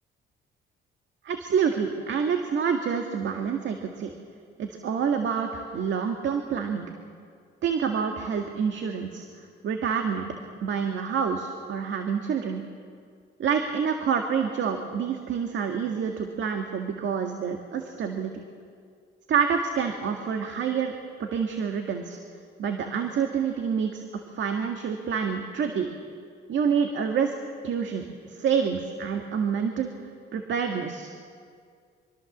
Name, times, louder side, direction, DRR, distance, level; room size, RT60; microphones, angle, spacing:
voice 1, 1.2-4.1 4.6-6.9 7.6-9.2 9.6-10.3 10.6-12.6 13.4-18.3 19.3-20.9 21.2-22.2 22.6-24.0 24.4-25.9 26.5-27.3 27.6-29.9 30.3-31.1, right 6 dB, 70° right, 4 dB, 1.9 m, -27 dB
24.5 x 23.5 x 7.3 m, 2.2 s
cardioid pair, 90°, 20 cm